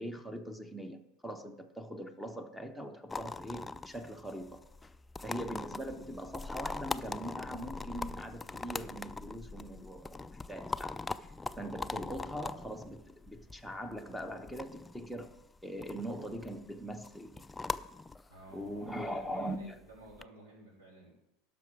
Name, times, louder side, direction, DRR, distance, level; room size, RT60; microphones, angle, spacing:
voice 1, 0.0-4.6 5.2-10.2 10.5-10.9 11.6-15.4 15.6-17.5 18.5-19.8, equal, ahead, 0.8 m, -41 dB
sound 1, 3.1-20.2, left 3 dB, 15° left, 0.3 m, -42 dB
voice 2, 18.3-21.1, right 1 dB, 80° right, 3.3 m, -53 dB
12.0 x 6.0 x 4.9 m
hypercardioid pair, 90°, 0 cm